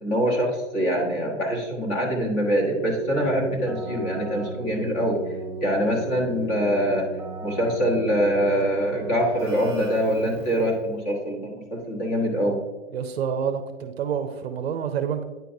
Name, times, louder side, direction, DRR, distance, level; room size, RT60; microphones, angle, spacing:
voice 1, 0.0-5.2 5.6-7.1 7.4-12.6, equal, 25° left, -1 dB, 1.3 m, -24 dB
Keyboard (musical), 2.8-10.9, right 2 dB, 5° right, 0.8 m, -35 dB
voice 2, 12.9-15.2, right 7 dB, 50° right, 7 dB, 0.6 m, -28 dB
9.2 x 4.5 x 2.6 m, 1.2 s
hypercardioid pair, 150°, 39 cm